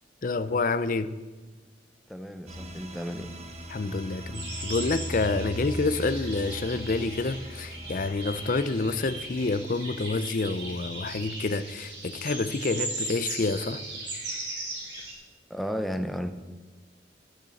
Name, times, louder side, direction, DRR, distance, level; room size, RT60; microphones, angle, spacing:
voice 1, 0.2-1.1 3.7-13.8, left 3 dB, 50° left, 0.5 m, -28 dB
voice 2, 2.1-3.3 15.5-16.3, equal, ahead, 0.6 m, -33 dB
sound 1, 2.5-9.6, equal, 40° right, 1.2 m, -39 dB
sound 2, 4.3-15.1, right 2 dB, 80° right, 3.9 m, -38 dB
12.0 x 6.6 x 7.8 m
head